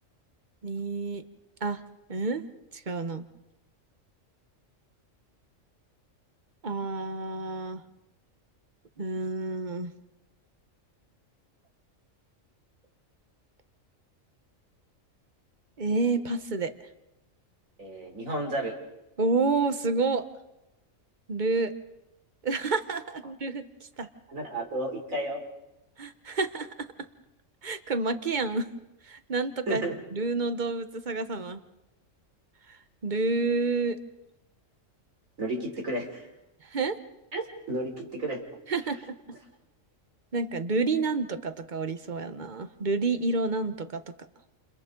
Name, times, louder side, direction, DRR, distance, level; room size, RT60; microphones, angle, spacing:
voice 1, 0.6-1.2 1.6-1.8 2.1-2.4 2.7-3.2 6.6-7.8 9.0-9.9 15.8-16.7 19.2-20.2 21.3-21.7 22.4-23.6 24.0-24.1 26.0-26.7 27.6-28.7 29.1-29.8 30.1-31.6 33.0-34.0 36.7-37.0 38.7-39.2 40.3-44.0, right 3 dB, 40° right, 9 dB, 1.2 m, -29 dB
voice 2, 17.8-18.8 24.3-25.4 29.7-30.0 35.4-36.3 37.3-38.4, right 1 dB, 90° right, 1 dB, 4.0 m, -32 dB
29.0 x 29.0 x 3.9 m, 0.93 s
omnidirectional pair, 1.4 m